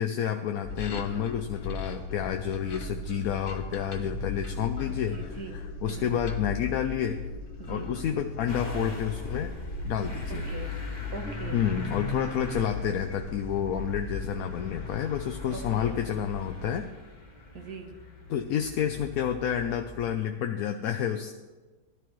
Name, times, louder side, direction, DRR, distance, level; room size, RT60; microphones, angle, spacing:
voice 1, 0.0-7.2 7.7-9.5 9.8-10.5 11.5-16.9 18.3-21.3, left 9 dB, 70° left, 6 dB, 1.0 m, -30 dB
sound 1, 0.6-16.9, left 3 dB, 45° left, 0.8 m, -37 dB
voice 2, 4.9-5.6 5.9-6.2 7.6-7.9 10.5-10.7 11.1-11.7 15.5-16.0 17.5-18.0, right 4 dB, 65° right, 4 dB, 1.6 m, -41 dB
Motor vehicle (road) / Engine starting, 8.5-20.1, left 2 dB, 25° left, 1.5 m, -41 dB
17.0 x 11.5 x 3.1 m, 1.3 s
omnidirectional pair, 1.8 m